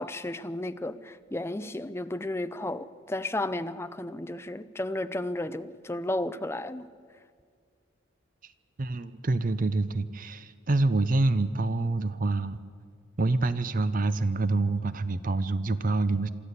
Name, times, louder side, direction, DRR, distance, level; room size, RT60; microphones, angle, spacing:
voice 1, 0.0-6.9, left 1 dB, 15° left, 11 dB, 0.5 m, -33 dB
voice 2, 8.8-12.6 13.2-16.3, right 2 dB, 45° right, 14 dB, 0.6 m, -26 dB
23.5 x 13.5 x 8.3 m, 2.1 s
head